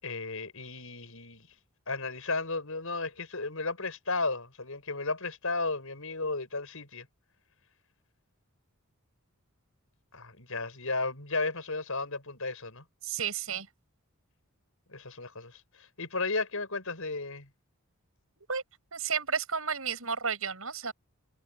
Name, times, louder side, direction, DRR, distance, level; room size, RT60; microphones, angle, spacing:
voice 1, 0.0-1.5 1.9-7.1 10.1-12.8 14.9-17.5, left 3 dB, 70° left, 6.2 m, -34 dB
voice 2, 13.0-13.7 18.4-18.6 18.9-20.9, right 6 dB, 70° right, 7.1 m, -32 dB
head